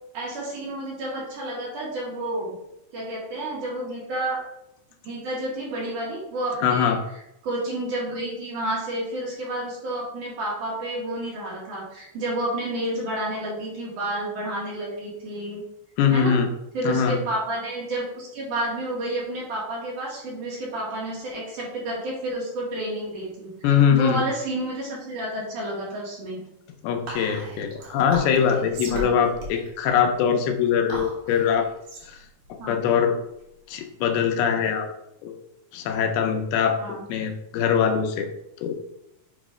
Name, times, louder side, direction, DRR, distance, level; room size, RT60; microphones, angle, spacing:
voice 1, 0.1-2.6 2.9-4.4 5.0-7.0 7.4-15.6 16.1-16.4 16.7-26.4 28.9-29.1 32.6-32.7 36.8-37.0, right 1 dB, 60° right, -5 dB, 3.1 m, -30 dB
voice 2, 6.6-7.0 16.0-16.5 16.8-17.2 23.6-24.2 26.8-31.7 32.0-32.2 32.5-33.2 33.7-34.9 35.2-35.4 35.7-38.3 38.6-38.8, left 7 dB, 85° left, 5 dB, 2.7 m, -22 dB
Whispering, 27.1-33.7, right 2 dB, 80° right, 3.7 m, -39 dB
8.1 x 3.1 x 4.9 m, 0.82 s
omnidirectional pair, 4.4 m